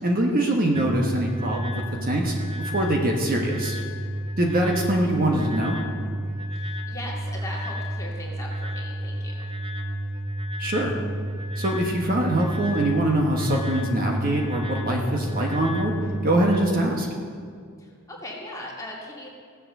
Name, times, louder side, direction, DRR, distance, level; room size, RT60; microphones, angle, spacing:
voice 1, 0.0-3.7 4.4-5.8 10.6-10.9 11.6-15.9 16.2-17.1, right 1 dB, 40° right, 0 dB, 1.4 m, -23 dB
sound 1, 0.7-16.6, right 1 dB, 25° right, 0.9 m, -31 dB
voice 2, 6.5-9.5 17.8-19.3, left 1 dB, 15° left, -4 dB, 2.4 m, -39 dB
16.0 x 7.6 x 6.6 m, 2.1 s
head